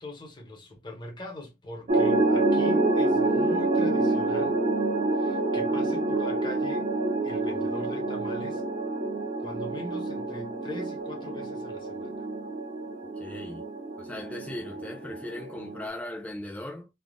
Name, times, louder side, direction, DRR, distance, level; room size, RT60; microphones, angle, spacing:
voice 1, 0.0-4.6 5.1-6.9 7.2-8.6 9.4-12.2, left 1 dB, 25° left, 0.7 m, -41 dB
sound 1, 1.9-15.9, right 2 dB, 45° right, 0.6 m, -27 dB
voice 2, 13.2-13.6 14.0-16.9, left 1 dB, 10° left, 0.3 m, -38 dB
3.3 x 2.1 x 2.4 m
head